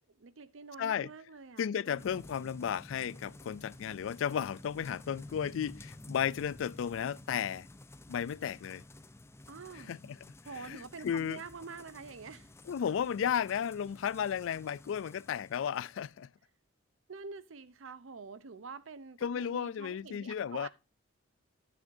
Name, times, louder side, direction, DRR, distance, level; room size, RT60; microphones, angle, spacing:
voice 1, 0.0-2.0 9.5-9.9 10.4-12.5 17.1-20.7, right 4 dB, 85° right, 0.7 m, -47 dB
voice 2, 0.8-1.1 1.6-7.7 8.1-8.8 9.9-10.2 10.6-11.4 12.7-16.3 19.2-20.7, left 8 dB, 75° left, 0.3 m, -34 dB
sound 1, 2.0-16.1, left 1 dB, 15° left, 0.5 m, -52 dB
9.5 x 9.1 x 2.6 m
head